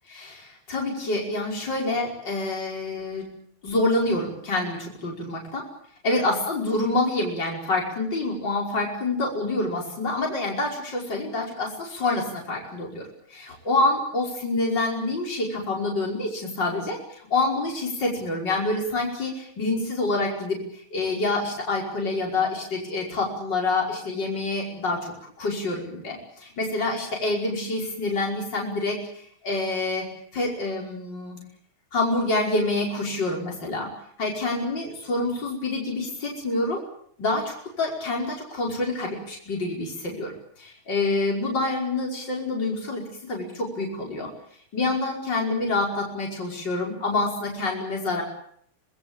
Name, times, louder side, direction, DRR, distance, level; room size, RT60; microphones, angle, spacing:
voice 1, 0.1-3.3 3.6-5.6 6.0-30.1 30.3-31.4 31.9-33.9 34.2-36.8 37.2-44.3 44.7-48.2, left 2 dB, 55° left, -1 dB, 6.1 m, -27 dB
26.0 x 20.5 x 9.0 m, 0.66 s
omnidirectional pair, 2.3 m